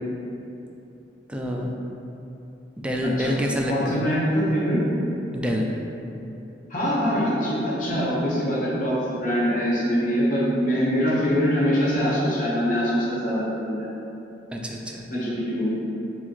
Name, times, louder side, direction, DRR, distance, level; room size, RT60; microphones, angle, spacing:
voice 1, 1.3-1.7 2.8-4.2 5.3-5.7 14.5-15.1, equal, 5° right, 0 dB, 0.3 m, -27 dB
voice 2, 3.7-4.8 6.7-13.9 15.1-15.6, equal, 50° left, -9 dB, 1.1 m, -23 dB
5.5 x 2.5 x 3.1 m, 2.9 s
head